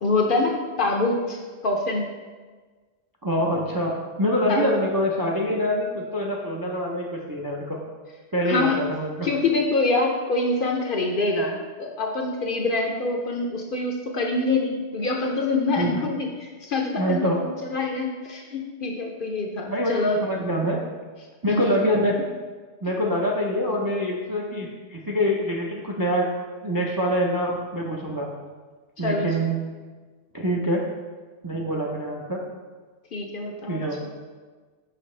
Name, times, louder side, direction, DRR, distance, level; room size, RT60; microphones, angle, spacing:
voice 1, 0.0-2.1 4.5-4.7 8.4-8.8 9.2-20.2 21.5-21.8 29.0-29.5 33.1-33.8, left 3 dB, 55° left, 1 dB, 0.6 m, -25 dB
voice 2, 3.2-7.8 8.3-9.3 15.8-16.0 17.0-17.4 19.7-20.8 21.4-22.2 22.8-26.3 26.6-28.3 29.0-29.6 30.3-30.8 31.4-32.4 33.7-34.0, equal, 30° right, -1 dB, 0.4 m, -25 dB
5.7 x 5.7 x 3.2 m, 1.4 s
omnidirectional pair, 1.3 m